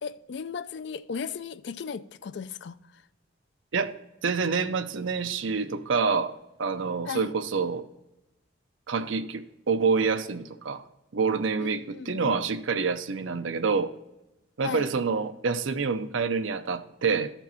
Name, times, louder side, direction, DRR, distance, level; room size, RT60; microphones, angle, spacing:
voice 1, 0.0-3.0 7.1-7.3 11.6-12.4 14.6-14.9, left 6 dB, 60° left, 0.4 m, -36 dB
voice 2, 4.2-6.3 6.6-7.8 8.9-10.8 11.1-13.9 14.6-17.3, right 5 dB, 70° right, 0.6 m, -27 dB
13.0 x 4.5 x 4.1 m
head